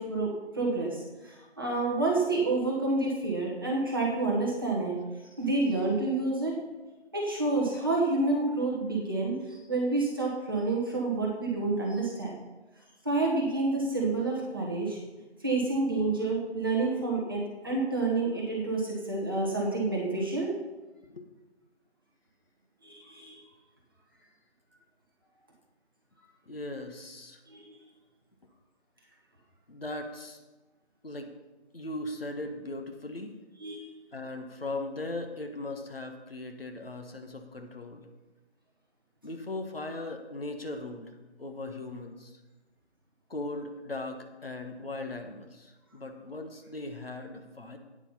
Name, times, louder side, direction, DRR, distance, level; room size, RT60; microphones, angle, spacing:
voice 1, 0.0-5.0 5.4-6.6 7.1-12.3 13.0-15.0 15.4-20.5 22.8-23.4 27.5-27.6 33.6-33.8, right 3 dB, 20° right, -3 dB, 1.3 m, -29 dB
voice 2, 26.5-27.4 29.7-30.4 31.0-31.3 31.7-33.3 34.1-38.1 39.2-41.1 41.4-42.4 43.3-47.8, left 2 dB, 60° left, 5 dB, 1.3 m, -38 dB
9.0 x 8.3 x 5.6 m, 1.1 s
figure-of-eight pair, 165°, 34 cm